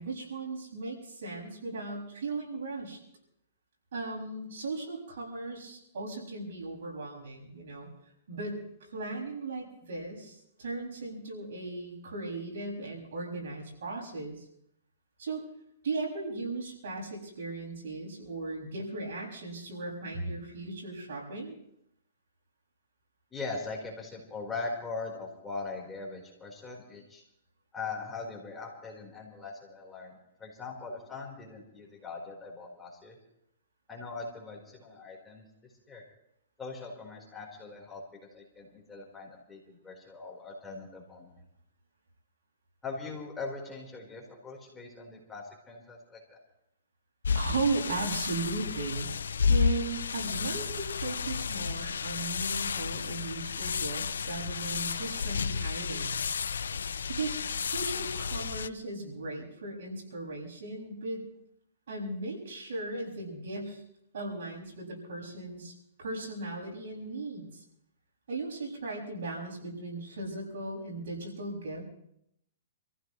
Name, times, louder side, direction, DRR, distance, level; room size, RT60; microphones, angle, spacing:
voice 1, 0.0-3.0 3.9-7.9 8.3-14.4 15.2-15.4 15.8-21.6 47.3-49.1 49.5-56.3 57.1-57.3 57.7-61.2 61.9-63.8 64.1-65.7 66.0-67.6 68.3-71.8, right 3 dB, 70° right, -1 dB, 6.4 m, -37 dB
voice 2, 23.3-27.2 27.7-33.2 33.9-36.0 36.6-41.3 42.8-46.4, left 3 dB, 10° left, -1 dB, 4.4 m, -41 dB
sound 1, 47.2-58.7, left 6 dB, 90° left, 0.5 m, -32 dB
28.0 x 15.0 x 3.2 m, 0.76 s
hypercardioid pair, 140°, 0 cm